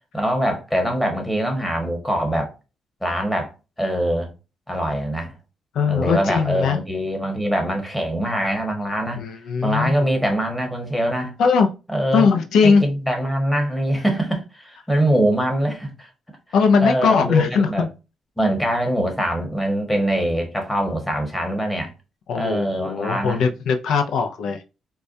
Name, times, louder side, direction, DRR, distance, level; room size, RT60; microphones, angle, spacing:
voice 1, 0.1-2.5 3.0-3.5 3.8-4.3 4.7-5.3 5.9-9.2 9.6-11.3 11.9-12.3 12.6-16.1 16.8-17.9 18.4-21.9 22.3-23.4, right 1 dB, 5° left, 1.3 m, -23 dB
voice 2, 5.7-6.8 9.2-10.0 11.4-11.7 12.1-12.8 16.5-17.9 22.3-24.6, left 5 dB, 75° left, 0.4 m, -19 dB
4.5 x 2.2 x 2.6 m
cardioid pair, 90°, 0 cm